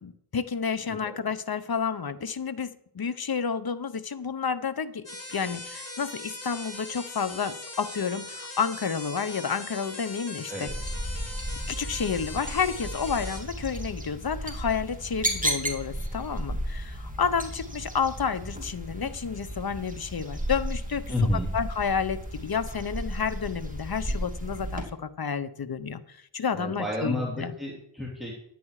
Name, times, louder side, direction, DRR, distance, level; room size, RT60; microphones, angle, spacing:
voice 1, 0.0-10.7 11.7-21.1 21.5-27.5, left 6 dB, 50° left, 12 dB, 0.8 m, -30 dB
voice 2, 0.9-1.2 10.5-10.7 21.1-21.5 26.5-28.3, left 1 dB, ahead, -4 dB, 2.8 m, -30 dB
sound 1, 5.1-13.4, left 1 dB, 30° left, 3.2 m, -40 dB
sound 2, 10.7-24.8, right 1 dB, 15° right, 2.7 m, -34 dB
11.0 x 8.6 x 4.8 m, 0.70 s
cardioid pair, 45°, 47 cm